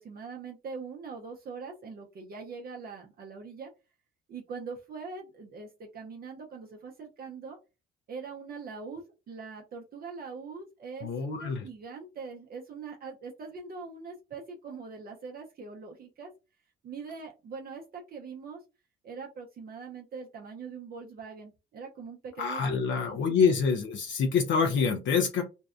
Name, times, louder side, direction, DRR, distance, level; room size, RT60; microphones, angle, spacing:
voice 1, 0.0-3.7 4.3-7.6 8.1-16.3 16.8-18.6 19.0-23.6, right 5 dB, 50° right, 1 dB, 0.5 m, -42 dB
voice 2, 11.0-11.6 22.4-25.4, left 5 dB, 70° left, 3 dB, 0.5 m, -26 dB
2.6 x 2.1 x 2.4 m, 0.29 s
cardioid pair, 90°, 20 cm